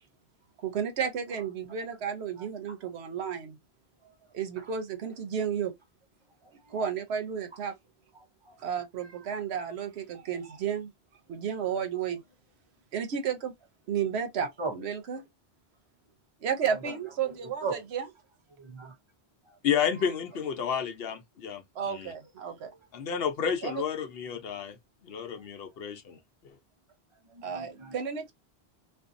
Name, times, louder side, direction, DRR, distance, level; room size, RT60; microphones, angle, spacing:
voice 1, 0.6-3.6 4.3-5.7 6.7-7.7 8.6-10.9 11.3-12.2 12.9-13.5 13.9-14.5 14.8-15.2 16.4-18.0 21.8-22.7 23.6-23.8 27.4-28.3, right 7 dB, 85° right, 1.0 m, -32 dB
voice 2, 1.3-2.9 4.0-4.3 4.6-4.7 6.4-6.9 7.5-7.6 8.1-8.6 11.6-12.0 14.6-14.9 16.6-17.8 18.5-19.0 19.4-19.6 19.9-20.1 22.6-22.8 24.4-24.5 25.1-25.5 26.1-26.2 27.1-28.0, right 3 dB, 35° right, 0.6 m, -42 dB
voice 3, 19.6-22.1 22.9-24.8 25.0-26.2 26.4-26.6, left 7 dB, 70° left, 0.9 m, -31 dB
2.6 x 2.3 x 2.5 m
omnidirectional pair, 1.1 m